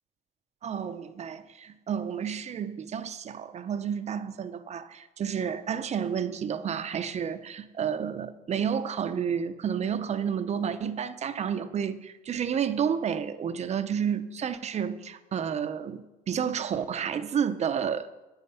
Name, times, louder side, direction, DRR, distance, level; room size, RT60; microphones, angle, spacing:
voice 1, 0.6-18.1, right 7 dB, 40° right, 11 dB, 0.7 m, -30 dB
9.4 x 8.9 x 5.5 m, 1.1 s
cardioid pair, 110°, 17 cm